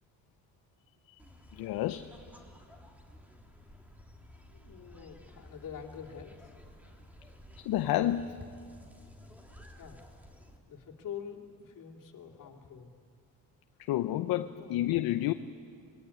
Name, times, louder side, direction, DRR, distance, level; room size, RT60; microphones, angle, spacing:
sound 1, 1.2-10.6, left 1 dB, 5° right, 2.7 m, -53 dB
voice 1, 1.5-2.1 7.6-8.3 13.8-15.3, left 13 dB, 80° left, 0.8 m, -30 dB
voice 2, 4.5-6.5 9.7-10.0 10.7-12.9 14.4-14.9, left 8 dB, 60° left, 2.9 m, -46 dB
25.0 x 20.5 x 9.8 m
cardioid pair, 115°, 36 cm